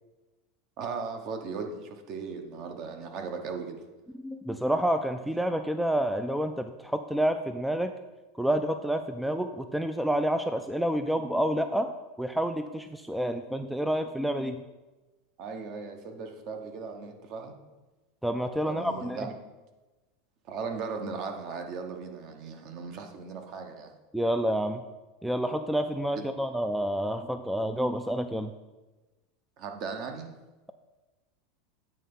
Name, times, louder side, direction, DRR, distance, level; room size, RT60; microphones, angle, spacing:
voice 1, 0.8-3.8 15.4-17.6 18.6-19.3 20.5-23.9 29.6-30.3, right 5 dB, 50° right, 5 dB, 1.1 m, -37 dB
voice 2, 4.2-7.9 8.4-11.9 12.2-14.6 18.2-19.2 24.1-24.8 25.2-28.5, equal, ahead, 8 dB, 0.3 m, -28 dB
9.1 x 3.4 x 5.4 m, 1.1 s
supercardioid pair, 125°, 0 cm